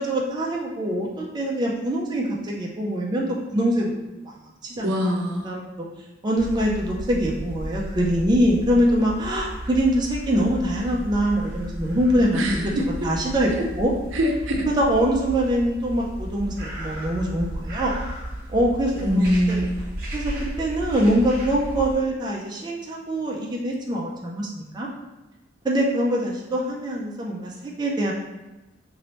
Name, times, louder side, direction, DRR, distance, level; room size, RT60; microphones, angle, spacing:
voice 1, 0.0-3.9 4.7-5.1 5.4-5.6 6.2-12.7 13.0-13.9 14.7-18.0 18.5-19.6 20.1-20.3 20.6-24.9 25.6-28.1, equal, 20° right, -2 dB, 0.4 m, -23 dB
voice 2, 4.8-5.5 12.3-13.1 13.6-13.7 14.1-14.7 19.0-19.8, equal, 85° right, 2 dB, 0.6 m, -23 dB
sound 1, 6.4-21.9, right 1 dB, 50° right, 0.7 m, -34 dB
3.0 x 3.0 x 3.0 m, 1.0 s
head